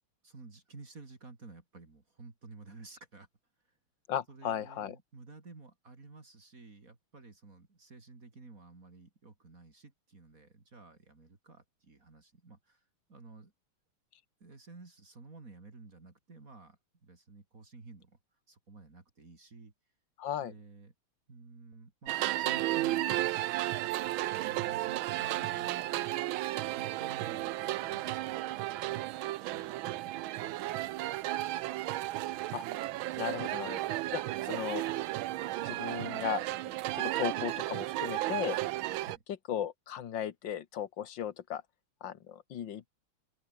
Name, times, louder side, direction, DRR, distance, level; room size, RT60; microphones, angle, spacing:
voice 1, 0.2-3.3 4.3-12.8 13.1-13.5 14.4-18.2 18.5-19.7 20.4-20.9 21.3-26.1 26.8-29.1 29.5-31.0 33.4-33.7 39.0-39.2, right 3 dB, 40° right, 3.5 m, -53 dB
voice 2, 4.1-5.0 20.2-20.5 32.5-32.7 33.2-34.8 35.6-36.4 36.9-38.6 39.3-41.6 42.0-42.9, left 9 dB, 65° left, 1.9 m, -36 dB
sound 1, 22.1-39.2, right 16 dB, 80° right, 1.4 m, -34 dB
open air
omnidirectional pair, 2.3 m